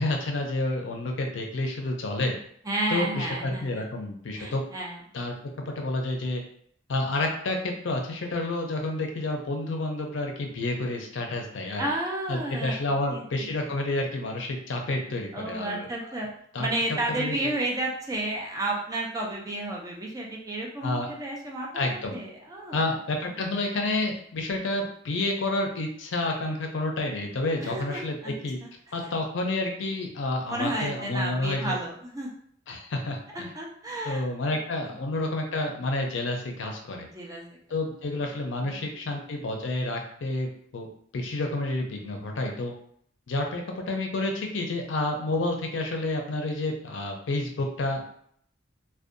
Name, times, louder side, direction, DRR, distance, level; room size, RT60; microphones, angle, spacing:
voice 1, 0.0-2.4 2.9-4.6 5.1-6.4 6.9-11.9 12.3-16.2 16.5-16.7 17.1-17.5 20.8-21.1 21.7-22.2 22.7-28.6 28.9-31.8 32.7-33.5 34.0-37.1 37.7-40.5 40.7-40.9 41.1-42.7 43.3-48.0, left 2 dB, 70° left, 2 dB, 0.5 m, -29 dB
voice 2, 2.6-3.9 4.3-5.0 11.8-12.8 13.1-13.5 15.3-16.3 16.6-22.9 27.6-28.3 28.6-28.7 29.0-29.1 30.5-32.3 33.3-34.6 37.1-37.4 38.6-39.0, right 1 dB, 20° right, -2 dB, 0.4 m, -32 dB
2.6 x 2.2 x 2.5 m, 0.64 s
head